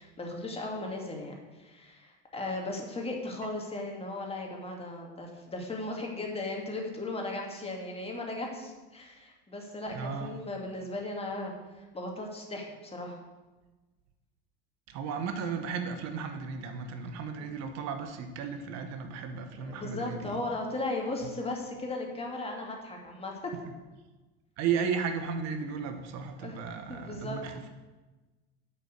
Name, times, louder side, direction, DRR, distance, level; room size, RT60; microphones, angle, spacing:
voice 1, 0.0-13.2 17.4-17.5 19.6-23.5 26.4-26.6 26.9-27.4, left 2 dB, 20° left, 0 dB, 2.1 m, -37 dB
voice 2, 9.9-10.3 14.9-20.4 24.6-27.7, right 6 dB, 60° right, 6 dB, 1.1 m, -34 dB
8.3 x 5.8 x 6.5 m, 1.2 s
supercardioid pair, 100°, 29 cm